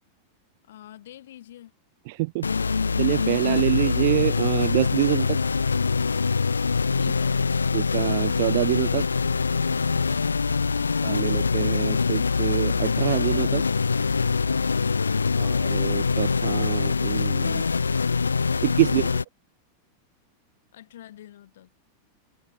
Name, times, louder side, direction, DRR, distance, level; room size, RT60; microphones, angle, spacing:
voice 1, 0.6-1.7 7.0-7.5 20.7-21.7, left 12 dB, 60° left, 2.1 m, -47 dB
voice 2, 2.1-2.5 3.0-5.4 7.7-9.1 11.0-13.6 15.4-17.6 18.6-19.1, right 23 dB, 50° right, 0.5 m, -26 dB
sound 1, 2.4-19.2, left 5 dB, 75° left, 0.4 m, -24 dB
figure-of-eight pair, 90°, 0 cm